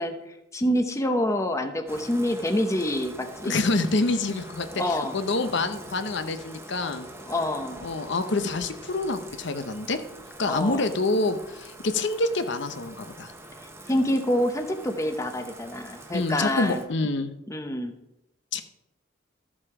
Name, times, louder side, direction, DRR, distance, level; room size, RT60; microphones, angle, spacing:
voice 1, 0.0-3.5 4.7-5.2 5.4-5.5 7.3-7.8 10.5-10.9 13.9-16.8 17.5-18.0, left 1 dB, 15° left, 6 dB, 0.7 m, -27 dB
Bathtub (filling or washing), 1.9-16.9, right 1 dB, 15° right, 1.1 m, -44 dB
voice 2, 3.4-7.1 7.8-10.0 10.4-13.3 16.1-17.3 18.5-18.6, left 2 dB, 60° left, 9 dB, 0.9 m, -27 dB
13.0 x 7.4 x 4.9 m, 0.89 s
head